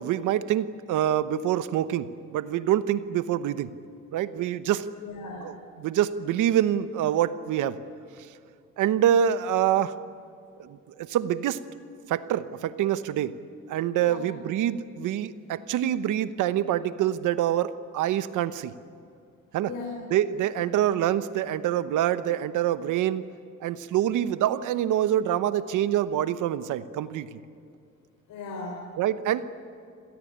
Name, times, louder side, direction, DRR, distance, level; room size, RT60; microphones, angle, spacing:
voice 1, 0.0-3.7 4.1-4.9 5.4-5.5 5.8-7.8 8.8-10.0 10.6-11.6 12.1-13.4 13.7-18.7 19.5-19.7 20.1-23.2 23.6-27.4 29.0-29.6, right 11 dB, 85° right, 13 dB, 1.0 m, -26 dB
voice 2, 5.0-5.5 13.9-14.4 19.6-20.1 20.7-20.8 28.3-28.9, left 3 dB, 85° left, 0 dB, 4.1 m, -38 dB
27.0 x 18.0 x 10.0 m, 2.4 s
cardioid pair, 90°, 30 cm